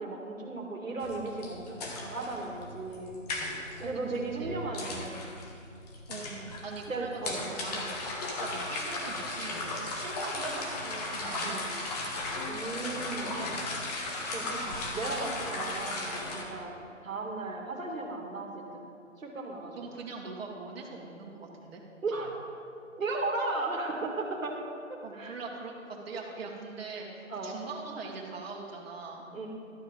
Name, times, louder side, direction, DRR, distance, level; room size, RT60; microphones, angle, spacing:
voice 1, 0.0-3.2 3.8-5.3 6.9-7.4 11.4-11.7 12.5-13.3 14.3-16.7 17.0-18.8 19.2-19.9 22.0-22.3 23.0-24.6 24.9-25.3 27.3-27.6 29.3-29.5, right 3 dB, 85° right, 0 dB, 1.9 m, -36 dB
sound 1, 1.0-16.4, left 2 dB, 30° left, 1.4 m, -36 dB
voice 2, 3.8-4.6 6.1-9.6 9.9-12.0 13.3-13.7 19.8-21.8 25.0-25.7 26.1-29.3, right 4 dB, 50° right, -2 dB, 1.9 m, -42 dB
12.0 x 7.0 x 5.2 m, 2.5 s
figure-of-eight pair, 145°, 39 cm